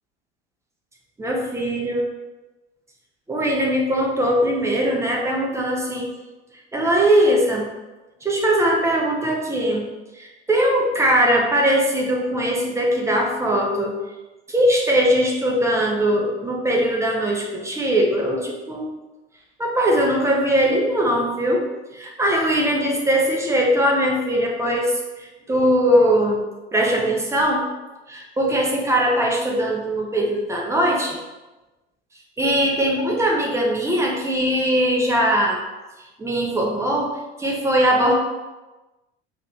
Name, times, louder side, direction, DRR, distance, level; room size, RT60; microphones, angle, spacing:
voice 1, 1.2-2.1 3.3-6.1 6.7-7.7 8.2-9.8 10.2-13.9 14.5-18.9 19.6-21.6 21.9-26.4 26.7-27.7 28.1-31.2 32.4-35.6 36.2-38.1, equal, 10° right, -1 dB, 0.9 m, -20 dB
5.2 x 2.7 x 3.1 m, 1.1 s
figure-of-eight pair, 75°, 32 cm